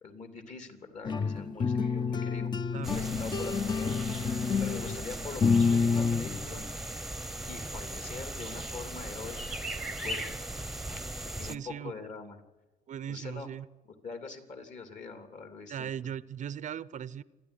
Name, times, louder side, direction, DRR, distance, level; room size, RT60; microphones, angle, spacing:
voice 1, 0.0-4.0 4.6-6.6 7.5-10.3 11.2-12.4 13.1-13.5 14.0-15.9, left 4 dB, 45° left, 7 dB, 3.1 m, -44 dB
sound 1, 1.0-6.7, left 5 dB, 25° left, 0.8 m, -28 dB
sound 2, 2.8-11.6, right 1 dB, ahead, 1.0 m, -38 dB
voice 2, 11.1-11.9 12.9-13.7 15.7-17.2, right 9 dB, 45° right, 18 dB, 0.6 m, -39 dB
27.0 x 10.5 x 10.0 m, 1.2 s
cardioid pair, 110°, 17 cm